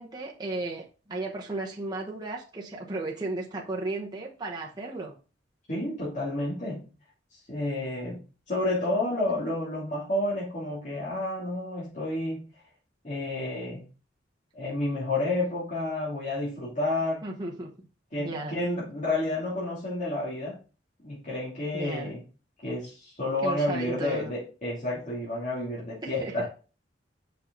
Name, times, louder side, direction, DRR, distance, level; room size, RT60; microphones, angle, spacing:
voice 1, 0.0-5.1 17.2-17.7 18.2-18.6 21.7-22.2 23.4-24.3 26.0-26.3, right 2 dB, 25° right, -2 dB, 1.0 m, -34 dB
voice 2, 5.7-6.9 7.5-8.2 8.5-12.4 13.0-13.8 14.5-17.2 18.1-20.6 21.0-22.2 22.6-26.5, left 2 dB, 45° left, -9 dB, 2.9 m, -30 dB
5.8 x 5.4 x 3.9 m, 0.34 s
head